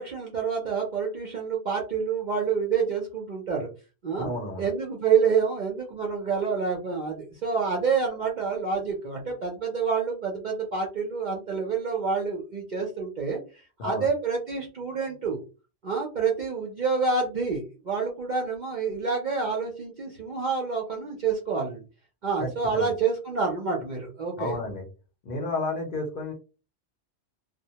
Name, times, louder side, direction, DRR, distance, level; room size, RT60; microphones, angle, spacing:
voice 1, 0.0-3.7 4.0-4.3 4.6-15.4 15.8-21.8 22.2-24.6, right 5 dB, 55° right, 0 dB, 0.5 m, -28 dB
voice 2, 4.2-4.7 13.8-14.1 22.4-22.9 24.4-24.8 25.2-26.3, left 2 dB, 55° left, 2 dB, 0.7 m, -31 dB
2.1 x 2.1 x 2.7 m, 0.32 s
omnidirectional pair, 1.2 m